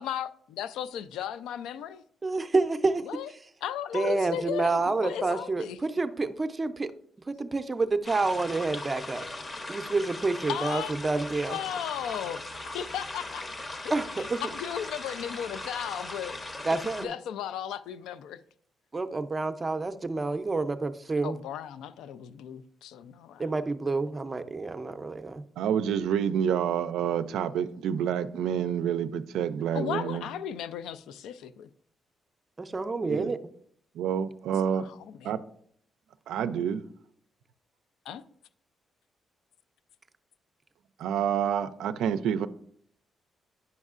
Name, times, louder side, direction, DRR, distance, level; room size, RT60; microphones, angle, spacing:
voice 1, 0.0-2.0 3.0-3.3 3.6-5.8 10.5-10.9 11.4-13.4 13.8-13.9 14.2-16.5 17.0-18.4 21.2-23.5 29.7-31.7 34.7-35.3 38.1-38.2, left 10 dB, 90° left, 0.3 m, -36 dB
voice 2, 2.2-3.1 3.9-6.9 7.3-9.2 9.7-11.6 13.9-14.4 16.6-17.1 18.9-21.4 23.4-25.4 32.6-33.4, right 3 dB, 25° right, 0.5 m, -28 dB
sound 1, 8.0-17.1, left 2 dB, 30° left, 0.7 m, -39 dB
voice 3, 25.6-30.3 33.0-33.3 33.9-34.8 35.2-35.4 36.3-36.8 41.0-42.5, right 8 dB, 90° right, 0.3 m, -28 dB
9.4 x 5.3 x 2.4 m
cardioid pair, 90°, 0 cm